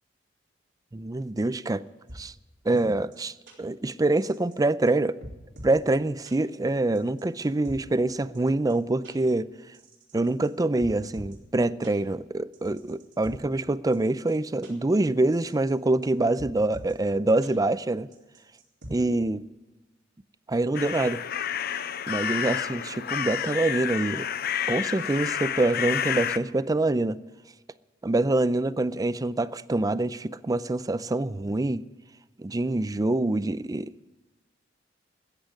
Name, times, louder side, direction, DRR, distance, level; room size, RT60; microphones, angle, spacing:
voice 1, 0.9-1.8 2.1-2.3 2.7-5.1 5.6-9.5 10.1-18.1 18.9-19.4 20.5-21.2 22.1-24.3 24.7-27.2 28.0-31.8 32.4-33.9, right 2 dB, 20° right, 0.4 m, -25 dB
sound 1, 2.1-2.2 2.8-2.9 3.1-3.2 3.5-3.6 4.2-4.6 4.9-5.0 5.2-5.8 6.2-6.3 6.9-7.8 8.3-8.4 8.7-8.8 9.0-9.1 9.7-10.5 10.8-11.4 11.8-11.9 12.5-13.3 13.9-14.0 14.3-14.4 14.6-14.7 15.3-15.7 16.0-16.1 16.4-16.9 17.4-17.5 18.1-18.9, equal, 65° right, 4.1 m, -44 dB
sound 2, 20.7-26.4, left 9 dB, 55° left, 0.6 m, -30 dB
14.5 x 10.0 x 9.7 m
head